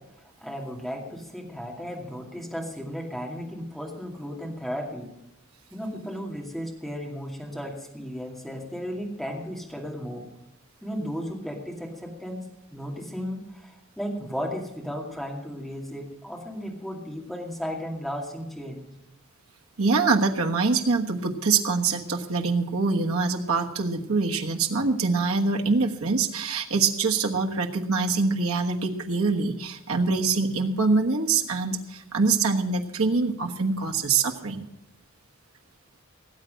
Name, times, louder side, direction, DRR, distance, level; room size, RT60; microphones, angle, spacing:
voice 1, 0.4-5.1 5.7-10.3 10.8-18.9, equal, ahead, -1 dB, 2.3 m, -35 dB
voice 2, 19.8-34.6, right 4 dB, 85° right, 3 dB, 1.3 m, -24 dB
18.0 x 8.0 x 6.4 m, 0.86 s
head